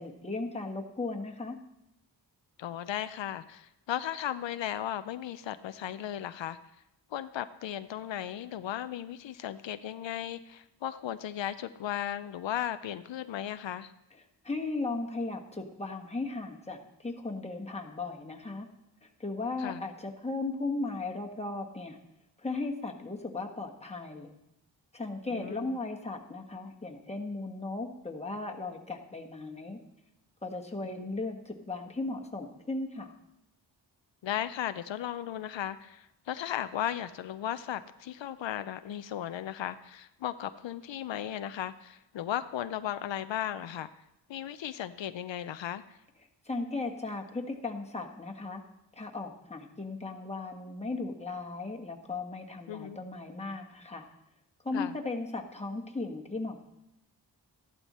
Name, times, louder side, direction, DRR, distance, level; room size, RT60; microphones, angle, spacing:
voice 1, 0.0-1.6 14.4-18.7 19.0-22.0 22.4-24.3 24.9-29.8 30.4-33.1 46.4-48.6 48.9-54.1 54.6-56.6, left 3 dB, 15° left, 1 dB, 1.5 m, -36 dB
voice 2, 2.6-6.6 7.1-13.9 19.6-19.8 25.3-25.8 30.9-31.2 34.2-43.9 44.3-46.0 52.7-53.0 54.7-54.9, left 11 dB, 85° left, 12 dB, 0.6 m, -36 dB
14.0 x 11.5 x 4.3 m, 0.85 s
wide cardioid pair, 90°, 43 cm